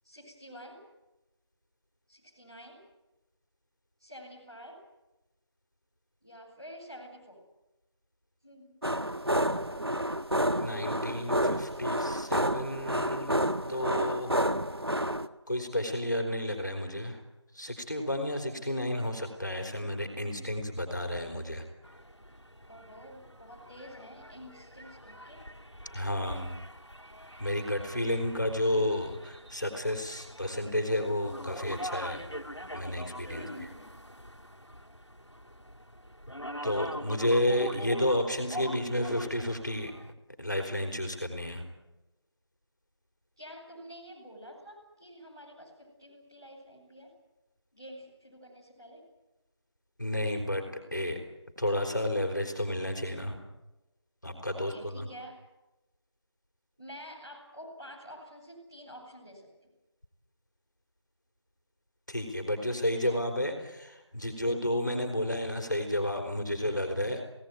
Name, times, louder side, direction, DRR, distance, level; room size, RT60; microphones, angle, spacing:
voice 1, 0.0-0.8 2.1-2.8 4.0-4.8 6.2-7.4 8.4-8.8 9.7-10.2 22.7-25.5 33.3-33.9 43.4-47.1 47.7-49.1 54.5-55.4 56.8-59.7 63.0-63.2, equal, 10° right, -10 dB, 4.6 m, -48 dB
sound 1, 8.8-15.3, equal, 60° right, 1.5 m, -29 dB
voice 2, 10.5-13.4 13.7-14.3 15.5-17.2 17.5-21.6 25.9-26.6 27.4-32.3 32.7-33.4 36.6-39.9 40.4-41.6 50.0-50.7 50.9-51.2 51.6-53.4 54.2-55.1 62.1-67.2, left 1 dB, 40° left, 4 dB, 4.5 m, -31 dB
sound 2, 21.8-40.1, equal, 80° left, 2.8 m, -43 dB
25.5 x 18.5 x 9.5 m, 1.0 s
figure-of-eight pair, 175°, 15 cm